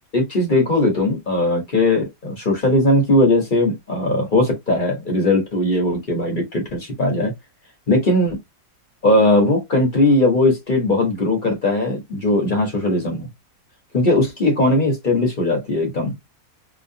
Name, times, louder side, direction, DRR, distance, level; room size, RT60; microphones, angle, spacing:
voice 1, 0.1-7.3 7.9-8.4 9.0-13.3 13.9-16.1, left 1 dB, 40° left, 0.9 m, -19 dB
3.0 x 2.2 x 2.6 m
omnidirectional pair, 1.7 m